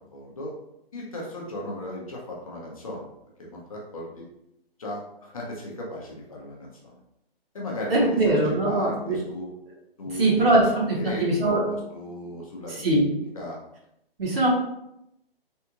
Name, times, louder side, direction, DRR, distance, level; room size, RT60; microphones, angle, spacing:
voice 1, 0.1-0.5 0.9-3.1 3.4-4.3 4.8-6.9 7.5-8.3 8.6-9.5 10.0-10.7 11.0-13.0 13.3-13.6, left 1 dB, 35° left, -2 dB, 0.6 m, -36 dB
voice 2, 7.9-9.2 10.1-11.6 12.7-13.1 14.2-14.5, right 2 dB, 70° right, -4 dB, 1.5 m, -22 dB
3.5 x 2.4 x 2.8 m, 0.80 s
hypercardioid pair, 170°, 30 cm